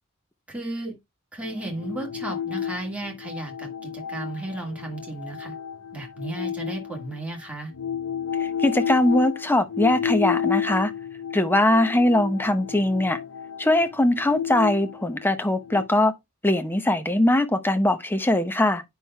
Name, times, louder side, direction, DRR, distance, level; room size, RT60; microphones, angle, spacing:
voice 1, 0.5-1.0 1.3-5.5 5.9-7.7, right 2 dB, 5° right, 1.7 m, -34 dB
sound 1, 1.4-7.2 7.7-15.8, left 8 dB, 80° left, 0.6 m, -31 dB
voice 2, 8.4-10.9 11.3-13.2 13.6-16.1 16.4-18.8, left 1 dB, 10° left, 0.7 m, -21 dB
8.9 x 5.6 x 2.2 m
head